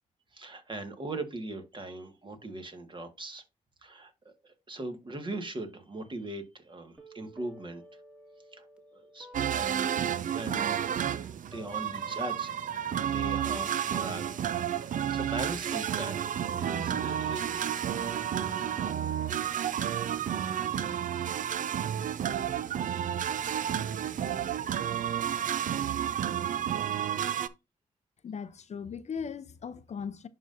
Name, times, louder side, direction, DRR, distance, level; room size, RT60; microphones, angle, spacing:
voice 1, 0.3-3.4 3.8-7.8 8.5-8.7 8.9-11.2 11.5-14.4 14.8-17.9, right 2 dB, 35° right, 1.7 m, -40 dB
sound 1, 7.0-13.0 13.2-21.0, equal, 5° right, 1.7 m, -54 dB
sound 2, 9.3-27.5, right 9 dB, 65° right, 0.5 m, -31 dB
voice 2, 28.2-30.3, left 6 dB, 50° left, 0.6 m, -38 dB
11.0 x 3.9 x 2.6 m
cardioid pair, 75°, 14 cm